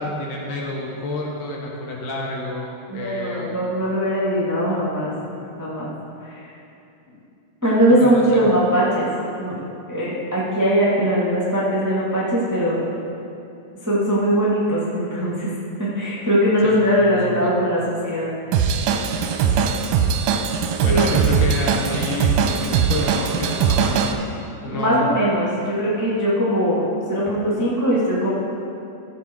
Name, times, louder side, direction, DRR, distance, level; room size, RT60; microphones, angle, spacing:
voice 1, 0.0-3.6 5.0-5.5 7.1-7.2 8.0-8.7 16.6-17.6 20.8-24.0 24.6-25.1, left 1 dB, 65° left, -2 dB, 2.5 m, -29 dB
voice 2, 2.9-5.1 5.6-5.9 6.2-6.4 7.6-9.1 9.4-9.6 9.9-13.0 13.8-15.5 15.8-18.7 20.9-21.0 23.8-23.9 24.6-28.3, equal, 10° right, -7 dB, 1.0 m, -20 dB
Drum kit / Drum, 18.5-24.1, right 6 dB, 75° right, 2.1 m, -20 dB
15.0 x 7.6 x 4.6 m, 2.7 s
omnidirectional pair, 4.3 m